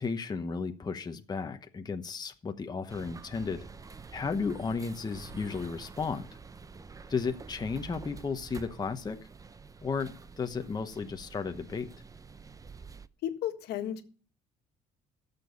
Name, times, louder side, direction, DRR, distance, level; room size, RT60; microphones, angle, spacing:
voice 1, 0.0-3.7 4.1-6.3 7.1-9.2 9.8-11.9, left 5 dB, 25° left, 6 dB, 1.0 m, -34 dB
sound 1, 2.9-13.1, right 5 dB, 20° right, 0.6 m, -48 dB
voice 2, 13.2-14.0, left 11 dB, 75° left, 6 dB, 1.7 m, -33 dB
13.5 x 7.0 x 6.9 m, 0.41 s
cardioid pair, 110°, 17 cm